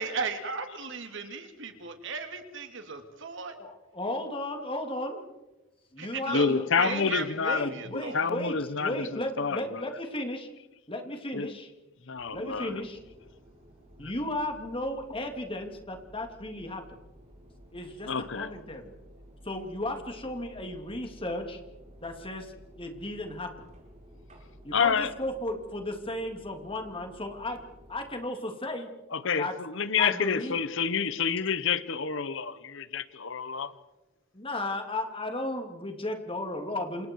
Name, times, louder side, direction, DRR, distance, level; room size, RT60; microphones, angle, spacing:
voice 1, 0.0-3.5 6.0-6.5 6.8-8.3, right 4 dB, 60° right, 6 dB, 2.9 m, -36 dB
voice 2, 3.5-5.2 5.9-7.1 7.4-10.5 10.9-11.7 12.3-13.0 14.0-16.8 17.7-18.1 18.4-18.9 19.4-21.6 22.0-23.5 24.6-27.6 27.9-28.9 29.4-29.5 30.0-30.6 34.3-37.1, left 1 dB, 25° left, 4 dB, 3.0 m, -34 dB
voice 3, 6.3-9.8 11.3-11.5 12.1-12.8 14.0-14.1 18.1-18.5 24.7-25.1 29.1-33.7, left 6 dB, 65° left, 14 dB, 1.0 m, -29 dB
sound 1, 12.1-28.1, equal, 35° right, 8.0 m, -53 dB
28.5 x 27.5 x 4.7 m, 1.0 s
head